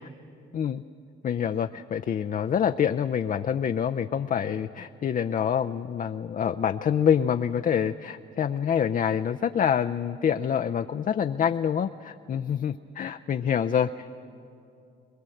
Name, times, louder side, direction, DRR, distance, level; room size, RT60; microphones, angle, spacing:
voice 1, 1.2-13.9, left 8 dB, 40° left, 9 dB, 0.5 m, -26 dB
21.5 x 21.0 x 7.8 m, 2.7 s
cardioid pair, 90°, 20 cm